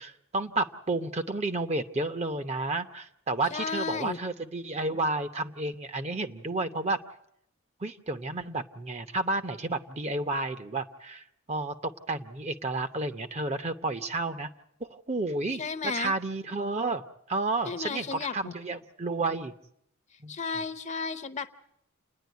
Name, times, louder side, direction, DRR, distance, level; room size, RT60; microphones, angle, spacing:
voice 1, 0.0-7.0 7.8-14.5 14.8-15.6 15.9-17.0 17.3-19.5 20.2-20.4, right 2 dB, 30° right, 10 dB, 0.7 m, -31 dB
voice 2, 3.5-4.2 15.6-16.1 17.7-18.5 20.3-21.5, left 4 dB, 30° left, 11 dB, 0.7 m, -33 dB
28.5 x 10.0 x 9.3 m, 0.75 s
head